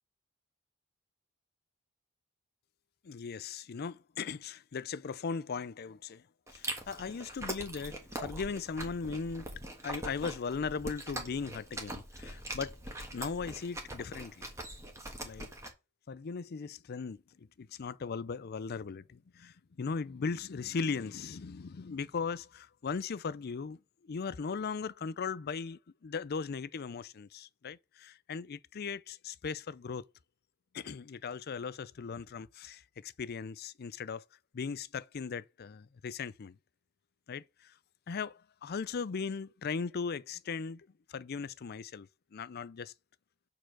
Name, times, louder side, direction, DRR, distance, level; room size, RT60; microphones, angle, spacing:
voice 1, 3.0-6.2 6.5-12.8 13.1-14.5 15.2-15.5 16.1-23.8 24.0-30.0 30.7-34.2 34.5-36.6 37.3-37.7 38.1-42.9, left 5 dB, 50° left, 0.4 m, -38 dB
Chewing mastication, 6.5-15.7, right 1 dB, 15° right, 1.6 m, -42 dB
6.9 x 4.5 x 5.9 m
head